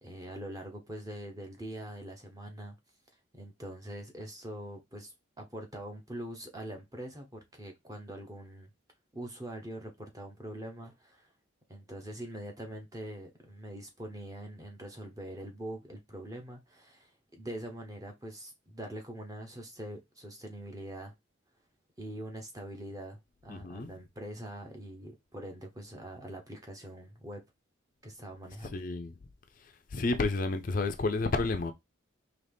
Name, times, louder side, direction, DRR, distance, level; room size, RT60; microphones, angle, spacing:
voice 1, 0.0-2.8 3.3-8.7 9.1-11.3 11.7-21.1 22.0-27.4 28.0-28.8, right 1 dB, 15° right, 0.8 m, -43 dB
voice 2, 23.5-23.9 28.7-29.1 29.6-31.7, left 3 dB, 40° left, 0.4 m, -31 dB
3.9 x 2.9 x 3.4 m
head